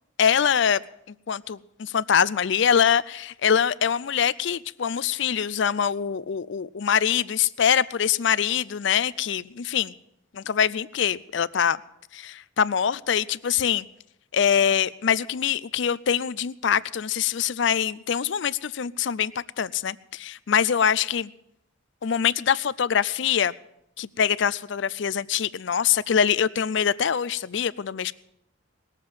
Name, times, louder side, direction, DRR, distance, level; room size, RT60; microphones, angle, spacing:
voice 1, 0.2-0.8 1.3-9.9 10.3-11.8 12.1-13.8 14.3-19.3 19.6-21.3 22.0-23.5 24.0-28.1, left 8 dB, 60° left, 18 dB, 0.4 m, -24 dB
20.0 x 7.4 x 7.8 m, 0.80 s
head